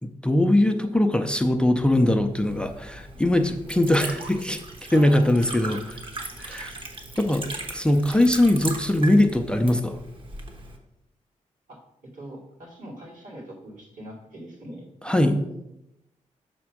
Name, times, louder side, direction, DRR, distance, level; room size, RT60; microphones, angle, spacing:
voice 1, 0.0-4.6 4.9-6.0 6.4-6.7 7.2-7.5 7.7-10.0 15.0-15.4, left 1 dB, 5° left, 6 dB, 0.5 m, -21 dB
Liquid, 2.2-10.8, right 2 dB, 40° right, 1.1 m, -38 dB
voice 2, 4.9-5.5 11.7-15.7, right 1 dB, 80° right, -4 dB, 2.6 m, -42 dB
6.0 x 4.3 x 5.9 m, 0.85 s
wide cardioid pair, 135°, 13 cm